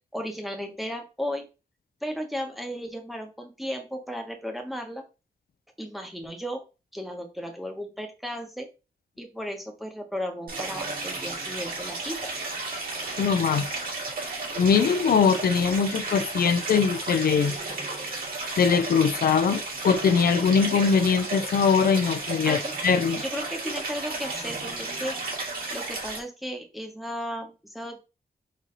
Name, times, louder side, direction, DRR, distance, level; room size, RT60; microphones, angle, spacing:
voice 1, 0.1-1.5 2.0-5.0 5.8-6.6 6.9-8.7 9.2-12.3 22.4-22.7 23.2-25.2 25.7-28.1, equal, ahead, 0.9 m, -35 dB
Stream, 10.5-26.2, right 3 dB, 65° right, 2.2 m, -33 dB
voice 2, 13.2-13.7 14.6-17.5 18.6-23.2, left 6 dB, 75° left, 0.5 m, -22 dB
4.2 x 3.1 x 3.8 m
wide cardioid pair, 130°, 16 cm